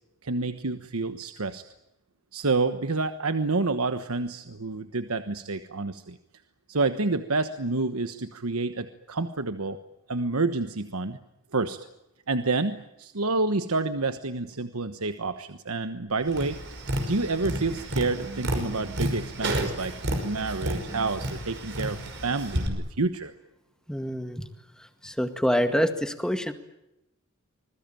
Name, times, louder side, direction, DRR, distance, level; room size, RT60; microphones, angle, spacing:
voice 1, 0.2-1.6 2.3-6.2 6.7-9.8 10.1-11.2 11.5-11.8 12.3-16.6 17.1-19.9 20.2-23.3, right 3 dB, 85° right, 9 dB, 1.2 m, -28 dB
Tap, 16.3-22.7, right 1 dB, 55° right, 5.7 m, -31 dB
voice 2, 23.9-24.5 25.0-26.5, equal, 5° left, 7 dB, 1.9 m, -26 dB
26.5 x 21.0 x 9.1 m, 0.90 s
head